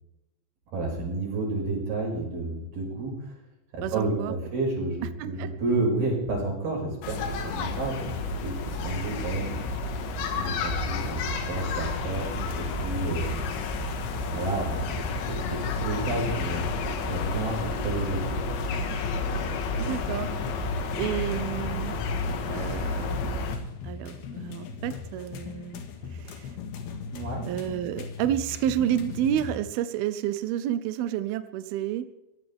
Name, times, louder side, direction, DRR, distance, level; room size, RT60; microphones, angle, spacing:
voice 1, 0.7-3.3 3.7-9.6 10.4-13.4 14.3-16.7 17.1-18.2 27.1-27.5, right 2 dB, 55° right, -1 dB, 7.4 m, -31 dB
voice 2, 3.8-4.3 5.0-5.5 19.8-20.3 21.0-21.9 22.5-23.4 23.8-25.8 26.1-26.6 27.4-32.1, right 11 dB, 80° right, 11 dB, 2.2 m, -30 dB
sound 1, 7.0-23.6, left 3 dB, 80° left, 3.9 m, -30 dB
sound 2, 12.0-29.6, left 5 dB, 65° left, 3.5 m, -41 dB
22.5 x 16.5 x 3.6 m, 0.95 s
omnidirectional pair, 5.1 m